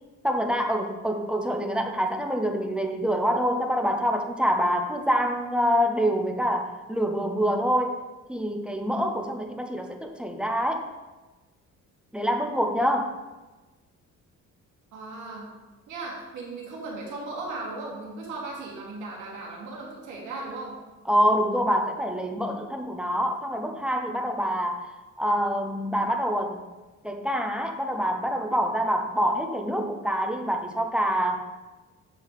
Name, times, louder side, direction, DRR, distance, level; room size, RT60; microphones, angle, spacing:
voice 1, 0.2-8.0 8.3-10.9 12.1-13.1 21.1-24.8 25.2-26.6 27.0-31.4, equal, 5° right, 3 dB, 0.4 m, -26 dB
voice 2, 14.9-15.5 15.9-20.7, right 3 dB, 70° right, -3 dB, 1.9 m, -37 dB
8.2 x 3.2 x 5.5 m, 1.2 s
cardioid pair, 180°, 31 cm